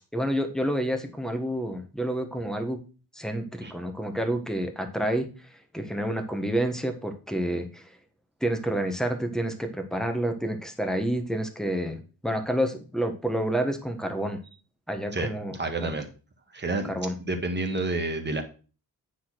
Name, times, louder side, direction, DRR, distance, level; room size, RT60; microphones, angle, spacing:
voice 1, 0.1-2.8 3.1-5.3 5.7-7.8 8.4-12.0 12.2-14.4 14.9-15.5 15.8-15.9 16.9-17.1, right 1 dB, ahead, 6 dB, 1.5 m, -29 dB
voice 2, 15.1-16.1 16.5-16.9 17.2-18.4, right 2 dB, 30° right, 4 dB, 1.7 m, -29 dB
9.5 x 4.1 x 6.2 m, 0.35 s
wide cardioid pair, 110°, 38 cm